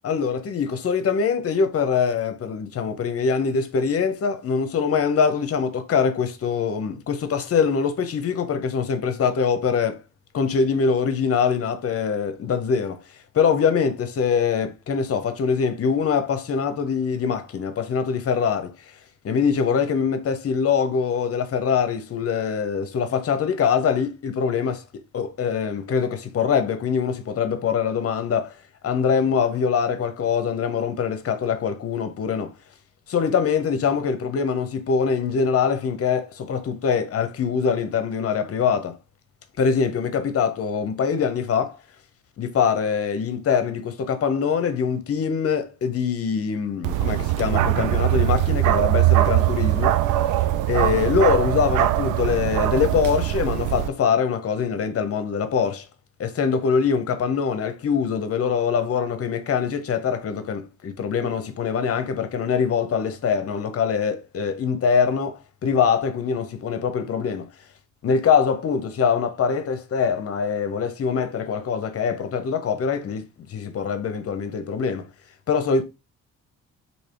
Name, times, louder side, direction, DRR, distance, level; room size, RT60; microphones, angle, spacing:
voice 1, 0.0-10.0 10.3-13.0 13.3-18.9 19.2-28.5 28.8-32.5 33.1-39.0 39.6-41.8 42.4-50.0 50.7-55.8 56.2-67.5 68.0-75.1 75.5-75.8, left 6 dB, 50° left, 0.8 m, -23 dB
Bark, 46.8-53.9, right 13 dB, 85° right, 0.5 m, -21 dB
3.3 x 2.8 x 4.3 m
cardioid pair, 90°, 30 cm